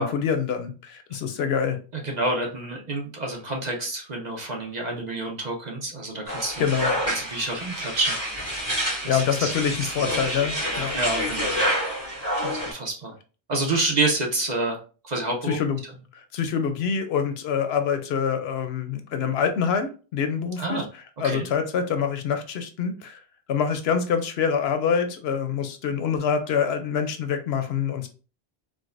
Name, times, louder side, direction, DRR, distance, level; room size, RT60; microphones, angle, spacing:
voice 1, 0.0-1.8 6.6-7.0 9.1-11.0 12.4-12.6 15.4-15.8 16.1-23.2 23.5-28.1, left 7 dB, 70° left, 8 dB, 0.8 m, -26 dB
voice 2, 1.9-6.6 7.1-9.5 10.0-10.1 10.9-11.6 12.7-13.1 13.5-14.8 15.0-15.6 20.6-20.8 21.2-21.5, right 2 dB, 45° right, 0 dB, 0.8 m, -28 dB
sound 1, 6.3-12.7, equal, 15° right, 1.9 m, -28 dB
4.6 x 2.1 x 2.5 m, 0.36 s
omnidirectional pair, 1.1 m